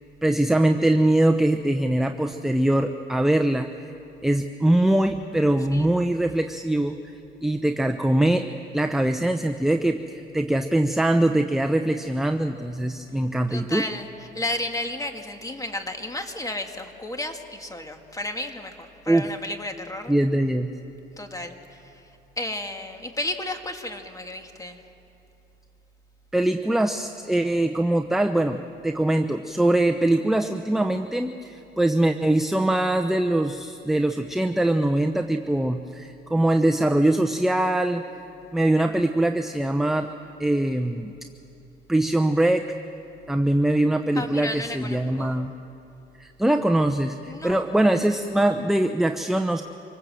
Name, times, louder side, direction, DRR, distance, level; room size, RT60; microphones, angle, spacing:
voice 1, 0.2-3.7 4.2-7.0 7.4-13.8 19.1-19.3 20.1-20.7 26.3-38.0 38.5-40.1 40.4-41.1 41.9-42.8 43.3-45.5 46.2-49.6, right 1 dB, ahead, 6 dB, 0.8 m, -22 dB
voice 2, 13.5-18.7 19.0-20.1 21.2-21.9 22.4-24.8 44.2-45.4 47.3-47.7, left 1 dB, 15° left, 5 dB, 2.1 m, -33 dB
25.5 x 19.5 x 7.7 m, 2.8 s
cardioid pair, 90°, 20 cm